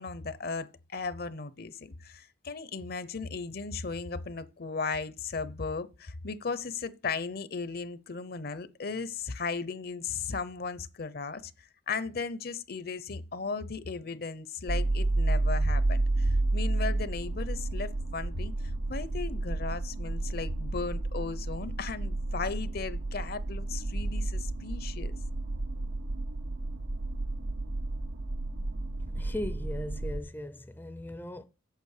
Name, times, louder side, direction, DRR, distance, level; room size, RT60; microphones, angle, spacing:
voice 1, 0.0-25.1, left 4 dB, 55° left, 0.8 m, -36 dB
sound 1, 14.7-30.2, right 2 dB, 85° right, 1.0 m, -31 dB
voice 2, 29.1-31.4, left 1 dB, 10° left, 0.5 m, -38 dB
8.3 x 7.4 x 6.6 m
head